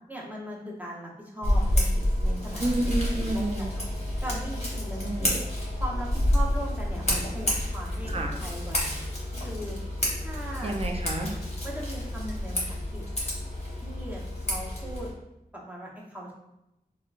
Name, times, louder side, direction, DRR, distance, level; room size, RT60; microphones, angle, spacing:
voice 1, 0.1-2.7 3.2-3.8 4.2-5.4 5.8-8.1 8.4-9.0 9.4-9.8 10.2-10.8 11.6-13.0 13.8-15.1 15.5-16.3, right 1 dB, 10° right, -3 dB, 0.8 m, -39 dB
Scissors, 1.4-15.1, left 1 dB, 45° left, 0.9 m, -29 dB
voice 2, 2.6-3.8 5.0-5.4 8.1-8.3 10.6-11.3, right 2 dB, 40° right, 2 dB, 0.5 m, -30 dB
3.5 x 2.2 x 2.3 m, 0.89 s
wide cardioid pair, 60°, 16 cm